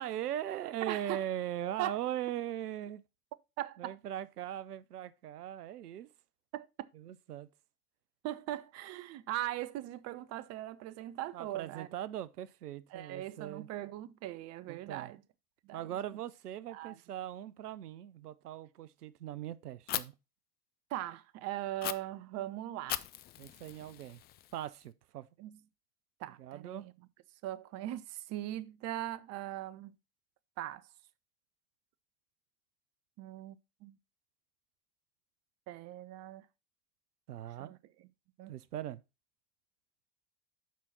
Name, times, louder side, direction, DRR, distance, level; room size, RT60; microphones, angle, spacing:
voice 1, 0.0-3.0 3.8-6.1 6.9-7.5 11.3-13.7 14.6-15.1 15.7-20.1 23.4-24.2 24.5-25.3 26.4-26.9 37.3-37.7 38.5-39.0, right 11 dB, 75° right, 0.7 m, -40 dB
voice 2, 0.8-1.2 1.8-2.0 3.6-4.0 6.5-6.9 8.2-11.9 12.9-15.2 15.6-15.9 16.7-16.9 20.9-23.0 25.4-25.6 26.2-26.9 27.4-29.9 30.6-30.9 33.2-33.6 33.8-34.0 35.7-36.4 37.6-37.8 38.4-38.5, right 14 dB, 35° right, 0.6 m, -40 dB
Fire, 19.9-20.0 21.8-21.9 22.9-24.8, left 13 dB, 25° left, 0.4 m, -39 dB
7.5 x 5.6 x 4.1 m
figure-of-eight pair, 80°, 46 cm